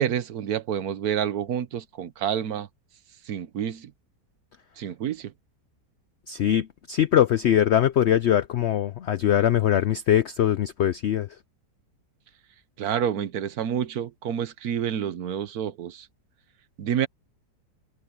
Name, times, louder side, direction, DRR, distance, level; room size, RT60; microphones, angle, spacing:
voice 1, 0.0-2.7 3.3-3.9 4.8-5.3 12.8-16.1 16.8-17.1, right 9 dB, 65° right, 1.4 m, -28 dB
voice 2, 6.3-11.3, left 10 dB, 90° left, 0.5 m, -22 dB
omnidirectional pair, 1.8 m